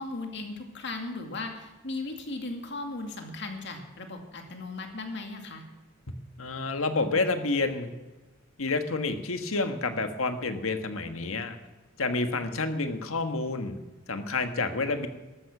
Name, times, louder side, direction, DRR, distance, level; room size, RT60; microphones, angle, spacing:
voice 1, 0.0-5.6, left 2 dB, 55° left, 4 dB, 2.4 m, -37 dB
voice 2, 6.4-7.9 8.6-11.6 12.0-13.8 14.1-15.1, left 3 dB, 90° left, 7 dB, 1.5 m, -29 dB
13.5 x 13.0 x 6.1 m, 1.2 s
head